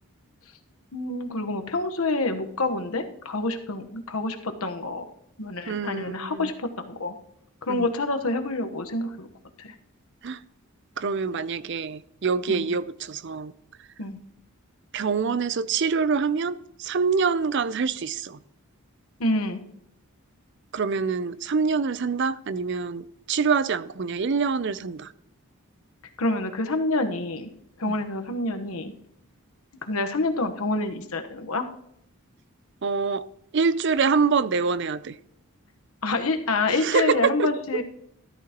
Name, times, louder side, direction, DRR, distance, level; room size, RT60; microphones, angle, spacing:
voice 1, 0.9-5.1 5.4-7.2 7.6-9.3 9.6-9.7 12.5-12.7 14.0-14.2 19.2-19.6 26.2-27.5 27.8-28.9 29.8-31.7 36.0-37.8, left 2 dB, 75° left, 1.2 m, -27 dB
voice 2, 5.7-6.5 7.7-7.8 10.2-10.4 11.0-13.5 14.9-18.4 20.7-25.1 27.9-28.0 32.8-33.2 33.5-35.1 36.8-37.8, right 5 dB, 50° right, 0.5 m, -25 dB
13.5 x 12.5 x 3.0 m
head